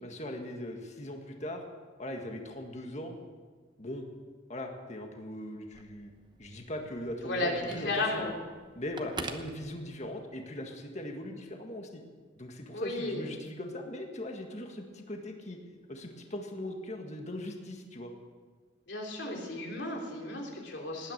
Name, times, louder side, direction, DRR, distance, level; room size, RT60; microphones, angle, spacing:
voice 1, 0.0-1.6 2.0-3.2 3.8-4.1 4.5-6.1 6.4-8.3 8.7-12.0 12.4-15.6 15.9-18.1, left 1 dB, 40° left, 3 dB, 1.7 m, -40 dB
Telephone, 5.6-10.4, right 3 dB, 25° right, 1.0 m, -46 dB
voice 2, 7.2-8.3 12.7-13.3 18.9-21.1, left 2 dB, 70° left, 0 dB, 3.3 m, -34 dB
19.0 x 9.5 x 6.7 m, 1.5 s
head